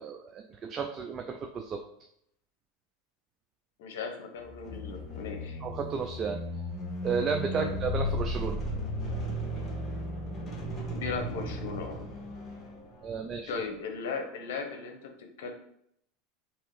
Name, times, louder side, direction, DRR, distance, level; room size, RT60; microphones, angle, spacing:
voice 1, 0.0-1.8 5.6-6.4 7.0-8.6 13.0-13.6, right 5 dB, 30° right, 4 dB, 0.4 m, -33 dB
voice 2, 3.8-5.6 7.6-7.7 10.9-12.0 13.5-15.1 15.4-15.5, left 5 dB, 75° left, 4 dB, 0.9 m, -37 dB
sound 1, 4.4-13.2, left 1 dB, 25° left, 1.2 m, -35 dB
3.5 x 3.0 x 4.6 m, 0.73 s
supercardioid pair, 115°, 0 cm